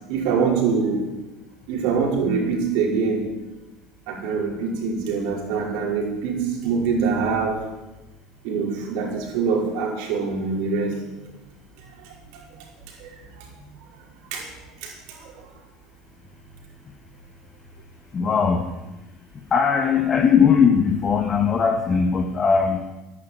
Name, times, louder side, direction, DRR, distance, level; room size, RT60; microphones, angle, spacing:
voice 1, 0.1-1.1 1.7-3.3 4.1-7.6 8.4-11.0 12.0-12.7 13.0-13.5 14.3-14.5 14.8-15.5, right 5 dB, 70° right, -1 dB, 5.4 m, -24 dB
voice 2, 18.1-18.7 19.5-22.9, left 6 dB, 30° left, 3 dB, 1.7 m, -19 dB
12.5 x 11.0 x 9.6 m, 1.0 s
supercardioid pair, 110°, 0 cm